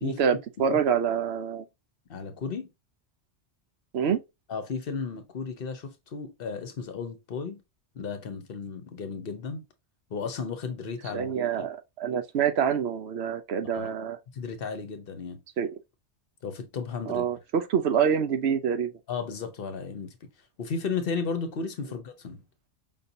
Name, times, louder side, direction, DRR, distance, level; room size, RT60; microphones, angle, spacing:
voice 1, 0.0-1.6 3.9-4.2 11.1-14.2 15.6-15.8 17.1-18.9, right 7 dB, 70° right, 0.9 m, -26 dB
voice 2, 2.1-2.7 4.5-7.6 7.9-9.6 10.1-11.7 13.7-13.9 14.3-15.4 16.4-17.2 19.1-20.1 20.6-22.4, left 5 dB, 55° left, 0.9 m, -34 dB
5.2 x 2.7 x 2.7 m
omnidirectional pair, 1.2 m